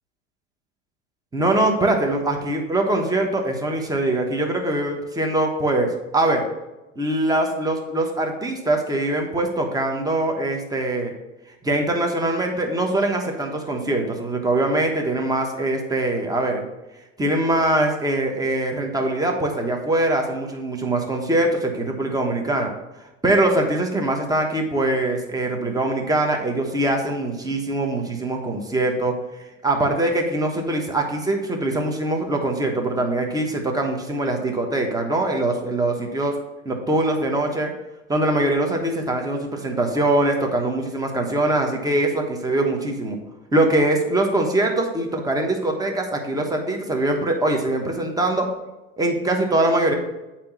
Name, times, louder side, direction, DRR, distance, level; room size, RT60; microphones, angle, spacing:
voice 1, 1.3-6.4 7.0-11.1 11.6-16.6 17.2-22.7 23.2-29.1 29.6-36.3 36.6-37.7 38.1-43.2 43.5-48.5 49.0-49.9, right 1 dB, 10° right, 2 dB, 1.2 m, -22 dB
8.4 x 3.0 x 6.0 m, 1.0 s
hypercardioid pair, 80°, 39 cm